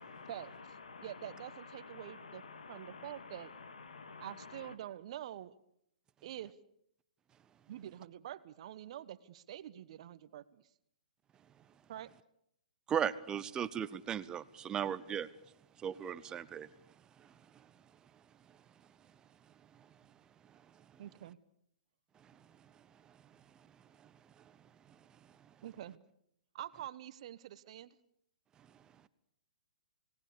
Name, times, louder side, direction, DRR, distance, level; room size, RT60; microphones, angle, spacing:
voice 1, 0.0-4.7, left 4 dB, 75° left, 10 dB, 2.6 m, -51 dB
voice 2, 1.0-2.4 2.7-3.5 4.2-5.5 6.2-6.5 7.7-10.6 11.9-12.1 21.0-21.4 25.6-26.0 26.5-27.9, right 12 dB, 50° right, 15 dB, 1.2 m, -46 dB
voice 3, 12.9-15.3 15.8-16.7, right 8 dB, 20° right, 16 dB, 0.8 m, -36 dB
28.5 x 18.5 x 7.0 m, 0.73 s
hypercardioid pair, 125°, 4 cm